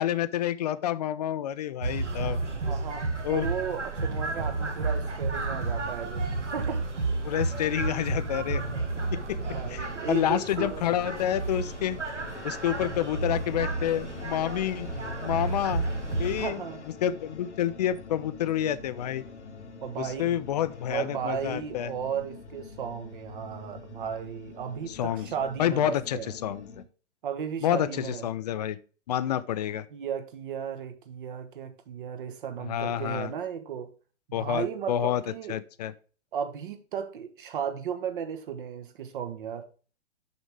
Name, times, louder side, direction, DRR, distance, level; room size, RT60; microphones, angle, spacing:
voice 1, 0.0-2.4 3.2-3.5 7.2-8.6 9.1-9.4 9.7-12.0 12.4-14.9 15.2-15.8 16.2-16.6 17.0-19.2 20.0-21.9 24.9-25.3 25.6-26.7 27.6-28.8 29.1-29.8 32.6-33.3 34.3-35.2 35.5-35.9, left 11 dB, 35° left, 16 dB, 0.5 m, -28 dB
sound 1, 1.8-16.5, right 3 dB, 80° right, 1.5 m, -32 dB
voice 2, 2.7-6.2 6.5-6.8 9.5-10.8 16.4-16.8 19.8-20.4 20.9-26.3 27.2-28.3 29.9-33.9 34.3-35.6 36.3-39.6, right 8 dB, 45° right, 8 dB, 1.3 m, -35 dB
sound 2, 8.1-26.8, left 4 dB, 75° left, 1.3 m, -46 dB
6.6 x 6.1 x 3.4 m, 0.37 s
figure-of-eight pair, 115°, 35 cm